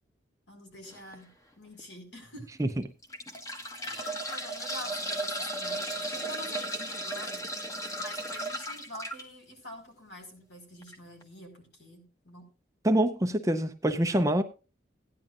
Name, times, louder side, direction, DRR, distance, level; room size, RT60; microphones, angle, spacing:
voice 1, 0.5-1.3 1.6-2.6 3.8-7.5 8.0-12.5, left 1 dB, 65° left, 4.7 m, -46 dB
sound 1, 0.9-1.1 1.8-1.9 2.8-9.2 10.8-10.9 11.2-11.3, right 1 dB, 15° left, 1.2 m, -35 dB
voice 2, 12.8-14.4, right 1 dB, 15° right, 0.6 m, -25 dB
16.5 x 10.5 x 2.5 m
head